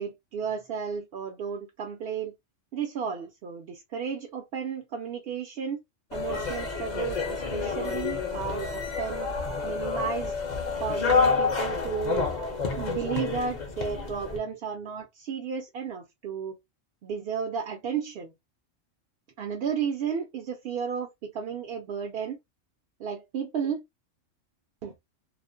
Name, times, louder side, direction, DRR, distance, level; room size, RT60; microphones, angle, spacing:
voice 1, 0.0-2.3 2.7-5.8 6.1-9.3 9.6-10.4 10.8-12.3 12.7-16.6 17.0-18.3 19.4-22.4 23.0-23.8 24.8-24.9, right 6 dB, 65° right, 0.6 m, -33 dB
sound 1, 6.1-14.4, left 4 dB, 45° left, 0.6 m, -29 dB
2.4 x 2.1 x 2.5 m
omnidirectional pair, 1.3 m